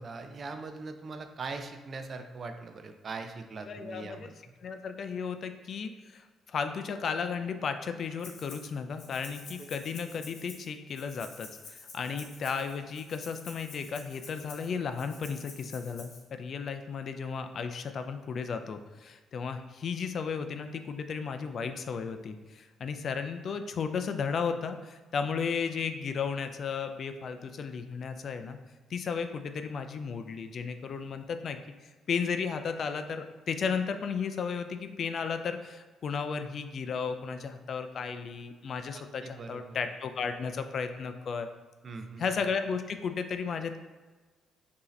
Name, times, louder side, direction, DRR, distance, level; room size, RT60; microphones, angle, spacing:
voice 1, 0.0-4.3 9.6-9.7 12.1-12.2 39.2-39.7 41.8-42.2, right 3 dB, 45° right, 6 dB, 0.4 m, -41 dB
voice 2, 3.7-4.3 4.6-6.3 6.5-28.6 28.9-31.6 32.1-41.5 42.2-43.8, left 6 dB, 55° left, 8 dB, 0.3 m, -34 dB
Rattle (instrument), 8.2-8.7 9.0-16.2, left 4 dB, 80° left, 1.0 m, -49 dB
4.6 x 2.7 x 3.2 m, 1.3 s
cardioid pair, 90°, 0 cm